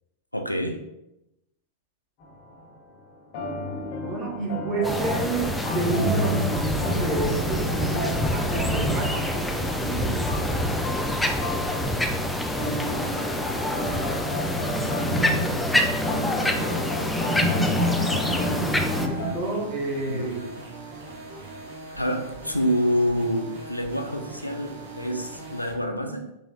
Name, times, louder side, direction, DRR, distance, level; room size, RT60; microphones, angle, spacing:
voice 1, 0.3-0.8 20.1-20.7 22.0-26.3, equal, 90° left, 5 dB, 0.3 m, -27 dB
sound 1, 2.2-2.7 3.3-19.3, equal, 45° left, 0.7 m, -30 dB
voice 2, 4.0-10.4 18.9-20.4, right 2 dB, 35° right, -3 dB, 1.0 m, -30 dB
sound 2, 4.8-19.1, left 1 dB, 5° left, 0.3 m, -27 dB
sound 3, 16.4-25.7, right 2 dB, 60° right, 0.7 m, -41 dB
3.7 x 3.1 x 2.3 m, 0.88 s
figure-of-eight pair, 90°, 0 cm